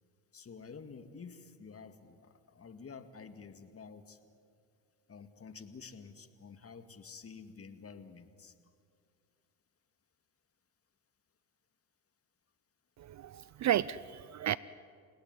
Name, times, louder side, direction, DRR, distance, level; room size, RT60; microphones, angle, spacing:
voice 1, 0.3-4.2 5.1-8.5, left 5 dB, 30° left, 9 dB, 2.2 m, -50 dB
voice 2, 13.0-14.6, right 11 dB, 40° right, 19 dB, 0.6 m, -33 dB
29.5 x 18.0 x 9.8 m, 2.2 s
hypercardioid pair, 75°, 44 cm